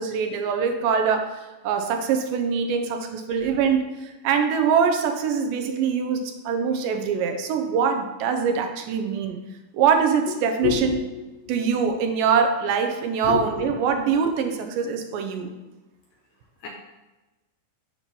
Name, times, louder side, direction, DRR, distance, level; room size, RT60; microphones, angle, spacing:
voice 1, 0.0-9.4 9.7-11.0 11.5-15.5, right 6 dB, 80° right, 5 dB, 2.2 m, -23 dB
voice 2, 10.6-11.6 13.2-13.7 16.6-16.7, left 8 dB, 80° left, -1 dB, 1.7 m, -28 dB
7.2 x 2.9 x 5.2 m, 1.1 s
omnidirectional pair, 3.8 m